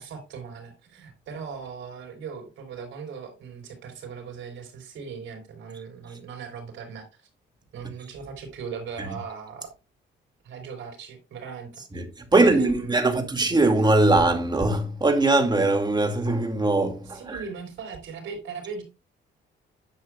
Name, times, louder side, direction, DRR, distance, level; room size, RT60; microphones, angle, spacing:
voice 1, 0.0-7.1 7.7-9.7 10.4-12.0 12.3-13.2 17.1-18.8, right 6 dB, 75° right, 3.9 m, -39 dB
voice 2, 12.3-17.4, right 2 dB, 20° right, 2.2 m, -21 dB
11.0 x 7.4 x 2.3 m
cardioid pair, 90°, 20 cm